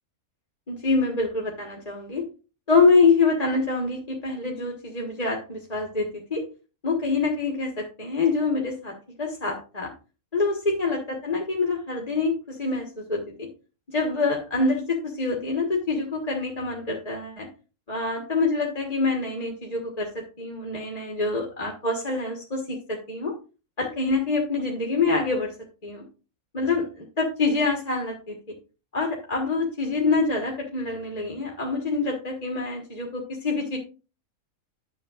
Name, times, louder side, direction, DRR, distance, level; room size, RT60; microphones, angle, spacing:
voice 1, 0.7-2.2 2.7-6.4 6.8-9.9 10.3-13.5 13.9-17.5 17.9-23.3 23.8-25.5 25.8-26.0 26.5-28.3 28.9-33.8, left 3 dB, 30° left, 0 dB, 1.4 m, -25 dB
10.5 x 7.0 x 2.4 m, 0.33 s
omnidirectional pair, 1.5 m